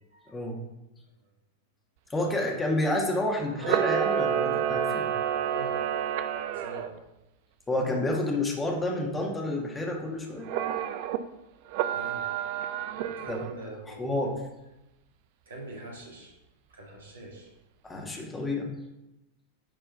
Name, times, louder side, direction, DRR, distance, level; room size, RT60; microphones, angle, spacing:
voice 1, 0.3-0.6 2.1-5.1 7.7-10.5 13.3-13.4 14.0-14.4 17.8-18.7, left 1 dB, 15° left, 0 dB, 1.9 m, -29 dB
voice 2, 2.2-2.6 5.5-5.8 6.5-7.0 11.9-12.3 13.0-14.3 15.5-16.4 16.7-17.5, right 1 dB, 65° right, -1 dB, 2.4 m, -43 dB
Camera, 3.6-6.9 10.5-11.2 11.7-13.5, right 9 dB, 50° right, 0.6 m, -29 dB
10.0 x 4.4 x 5.5 m, 0.95 s
figure-of-eight pair, 90°, 0 cm